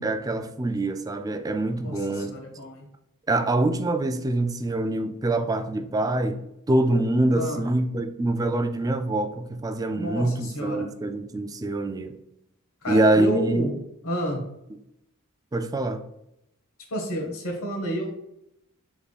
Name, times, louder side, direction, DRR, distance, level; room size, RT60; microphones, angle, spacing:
voice 1, 0.0-2.3 3.3-6.4 6.7-12.1 12.9-13.6 15.5-16.0, right 2 dB, 15° right, 0.3 m, -25 dB
voice 2, 1.8-2.8 7.3-7.6 10.0-10.9 12.8-13.7 14.0-14.4 16.9-18.2, equal, 75° left, 1.3 m, -30 dB
3.7 x 3.5 x 4.0 m
head